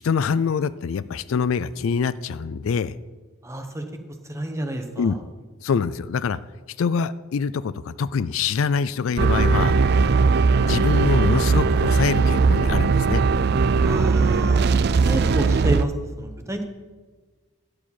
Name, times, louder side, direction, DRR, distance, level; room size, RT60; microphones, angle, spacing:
voice 1, 0.0-2.9 5.0-5.2 5.6-6.4 6.8-9.8 10.6-13.2, left 5 dB, 65° left, 17 dB, 0.4 m, -24 dB
voice 2, 3.4-3.9 4.3-5.2 13.8-15.9 16.2-16.7, right 1 dB, 15° right, 5 dB, 1.1 m, -29 dB
sound 1, 9.2-15.8, right 4 dB, 50° right, 0.4 m, -19 dB
13.5 x 4.9 x 8.8 m, 1.4 s
head